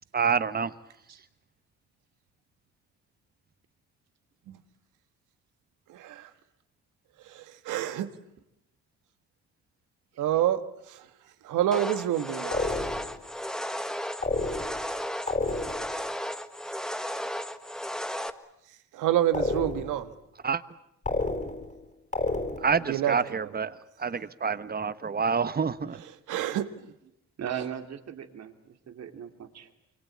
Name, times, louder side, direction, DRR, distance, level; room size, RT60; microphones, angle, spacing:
voice 1, 0.1-0.7 20.4-20.6 22.6-26.0, right 6 dB, 30° right, 1.2 m, -27 dB
voice 2, 5.9-6.3 7.2-8.1 10.2-10.6 10.9-11.1 11.4-12.7 18.9-20.1 22.8-23.6 25.9-26.9 27.5-27.7, right 11 dB, 90° right, 1.7 m, -28 dB
sound 1, 11.7-18.3, equal, ahead, 1.5 m, -34 dB
sound 2, 12.5-13.2 14.2-14.9 15.3-16.0 19.3-20.1 21.0-21.8 22.1-22.9, left 3 dB, 25° left, 3.8 m, -30 dB
voice 3, 27.4-29.7, right 8 dB, 60° right, 2.9 m, -38 dB
27.0 x 24.0 x 8.6 m
cardioid pair, 90°, 30 cm